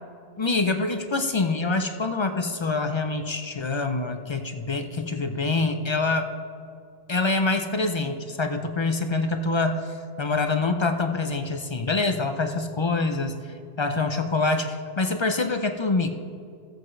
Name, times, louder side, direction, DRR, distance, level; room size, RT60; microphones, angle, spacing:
voice 1, 0.4-6.3 7.1-13.4 13.8-16.1, left 3 dB, 40° left, 6 dB, 0.4 m, -25 dB
16.0 x 7.8 x 3.2 m, 2.4 s
omnidirectional pair, 1.1 m